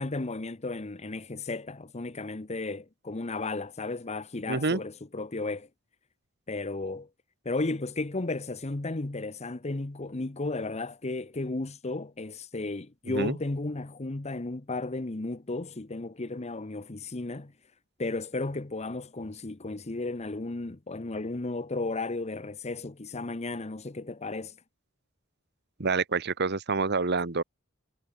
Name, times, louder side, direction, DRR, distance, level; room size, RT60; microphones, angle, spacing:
voice 1, 0.0-5.7 6.5-7.1 7.4-17.5 18.0-24.5, left 2 dB, 30° left, 0.9 m, -34 dB
voice 2, 4.5-4.8 13.1-13.4 25.8-27.4, right 4 dB, 55° right, 1.4 m, -27 dB
head